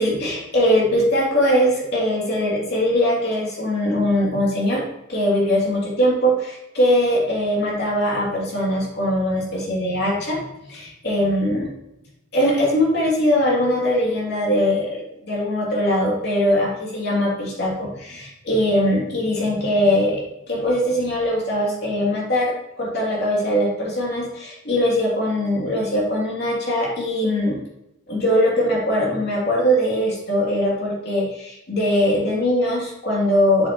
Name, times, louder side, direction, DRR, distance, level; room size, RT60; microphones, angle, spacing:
voice 1, 0.0-4.8 5.1-10.4 10.7-11.7 12.3-27.6 28.1-33.7, equal, 55° left, -4 dB, 2.9 m, -21 dB
7.8 x 7.3 x 3.1 m, 0.88 s
head